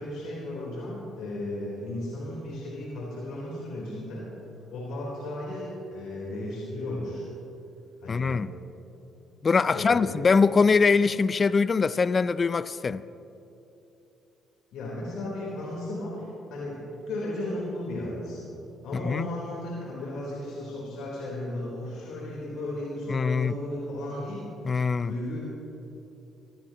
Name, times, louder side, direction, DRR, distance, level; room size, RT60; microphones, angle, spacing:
voice 1, 0.0-4.3 4.7-7.2 8.0-8.3 9.7-10.3 14.7-18.5 18.8-24.4 24.7-25.4, left 1 dB, 80° left, 3.8 m, -35 dB
voice 2, 8.1-8.5 9.4-13.0 19.0-19.3 23.1-23.5 24.6-25.1, left 5 dB, 40° left, 0.4 m, -23 dB
23.5 x 15.0 x 3.0 m
supercardioid pair, 70°, 0 cm